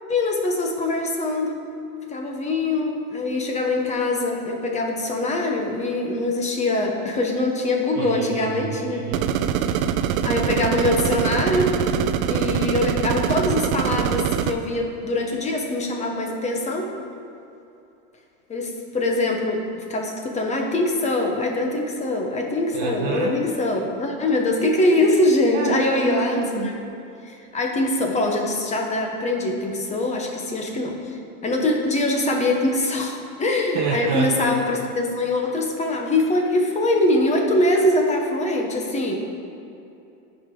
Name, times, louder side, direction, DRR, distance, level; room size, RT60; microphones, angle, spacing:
voice 1, 0.1-1.6 2.1-9.1 10.2-11.8 12.3-16.9 18.5-26.8 27.2-39.1, left 2 dB, 15° left, 1 dB, 1.0 m, -23 dB
voice 2, 7.9-9.4 22.7-23.4 25.5-26.7 33.7-34.6, right 5 dB, 45° right, -2 dB, 0.9 m, -27 dB
sound 1, 9.1-14.5, right 9 dB, 75° right, 0.6 m, -23 dB
13.5 x 5.2 x 3.8 m, 2.8 s
supercardioid pair, 135°, 42 cm